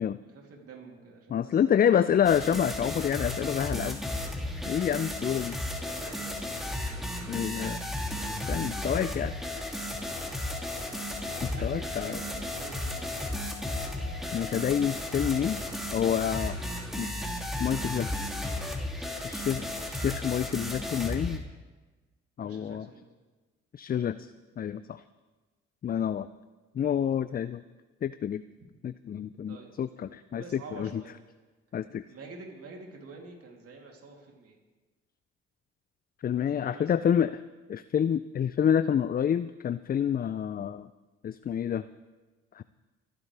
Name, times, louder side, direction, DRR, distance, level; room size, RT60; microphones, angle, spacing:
voice 1, 0.3-1.9 5.7-6.5 7.1-7.4 11.2-13.2 22.4-23.1 28.6-28.7 29.5-29.8 30.3-31.2 32.1-34.6 36.5-37.1, right 3 dB, 55° right, 0 dB, 3.1 m, -48 dB
voice 2, 1.3-4.0 4.7-5.6 7.2-7.8 8.3-9.3 11.6-12.2 14.3-15.6 15.9-16.6 17.0-17.1 17.6-18.3 19.2-21.4 22.4-22.9 23.7-25.0 25.8-26.3 26.7-27.6 28.0-28.4 28.8-31.0 31.7-32.0 36.2-37.4 37.7-40.9 41.2-41.9 42.5-42.6, left 9 dB, 30° left, 14 dB, 0.4 m, -28 dB
sound 1, 2.2-21.4, left 1 dB, ahead, 2.8 m, -34 dB
Singing / Glass, 9.1-15.7, left 7 dB, 65° left, 2.2 m, -49 dB
26.5 x 10.5 x 3.4 m, 1.3 s
hypercardioid pair, 55°, 29 cm